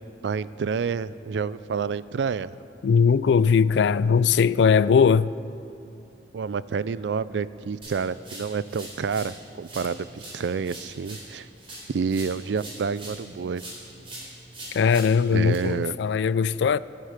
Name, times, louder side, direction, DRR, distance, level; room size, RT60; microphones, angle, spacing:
voice 1, 0.2-2.6 6.3-11.5 11.9-13.6 15.3-16.0, right 5 dB, 80° right, 0.4 m, -29 dB
voice 2, 2.8-5.3 14.7-16.8, left 6 dB, 75° left, 0.3 m, -20 dB
sound 1, 7.8-9.4 9.6-13.3 13.6-15.6, right 1 dB, 30° right, 4.0 m, -42 dB
11.0 x 10.0 x 8.9 m
head